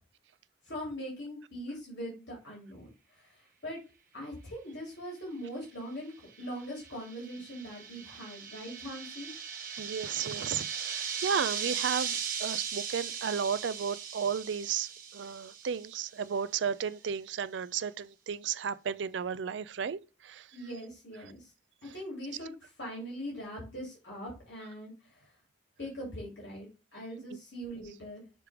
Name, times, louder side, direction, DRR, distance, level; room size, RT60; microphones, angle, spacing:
voice 1, 0.7-2.9 3.6-3.8 4.1-6.1 6.4-9.3 20.5-21.5 21.9-25.3 25.8-28.2, equal, 80° left, 2.7 m, -41 dB
sound 1, 6.3-16.1, right 7 dB, 55° right, 1.2 m, -38 dB
voice 2, 9.8-20.5, right 7 dB, 80° right, 0.4 m, -34 dB
6.7 x 3.1 x 4.7 m
head